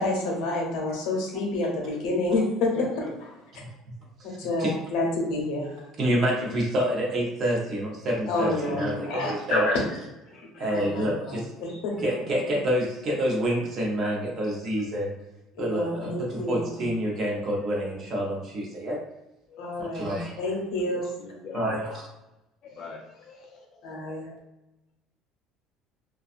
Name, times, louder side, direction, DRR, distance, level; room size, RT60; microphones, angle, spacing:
voice 1, 0.0-2.9 4.2-5.8 8.3-9.8 10.6-12.1 15.5-16.6 19.6-20.0 20.4-21.1 23.8-24.4, left 2 dB, 70° left, -1 dB, 0.7 m, -28 dB
voice 2, 2.8-3.1 4.0-4.1 7.7-8.5 10.3-10.7 14.0-14.1 19.5-20.0 20.8-22.0 22.6-24.3, left 4 dB, 45° left, 0 dB, 0.4 m, -44 dB
voice 3, 4.3-4.7 6.0-9.7 10.6-11.5 11.9-15.1 15.6-19.0 19.8-20.4 21.5-22.0, equal, 35° right, -2 dB, 0.7 m, -27 dB
2.5 x 2.3 x 2.5 m, 0.94 s
cardioid pair, 155°, 0 cm